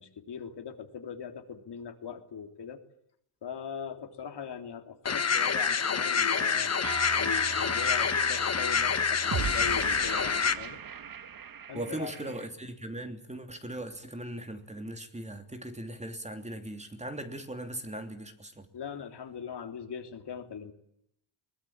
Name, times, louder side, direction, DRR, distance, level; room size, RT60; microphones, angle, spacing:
voice 1, 0.0-2.8 3.4-6.7 7.2-10.8 11.7-12.4 18.7-20.7, left 7 dB, 55° left, 3.5 m, -40 dB
sound 1, 5.1-10.5, left 6 dB, 35° left, 1.5 m, -27 dB
sound 2, 6.3-12.5, right 6 dB, 45° right, 1.6 m, -39 dB
voice 2, 11.7-18.7, right 1 dB, 15° right, 3.1 m, -39 dB
22.5 x 20.0 x 8.9 m
cardioid pair, 105°, 47 cm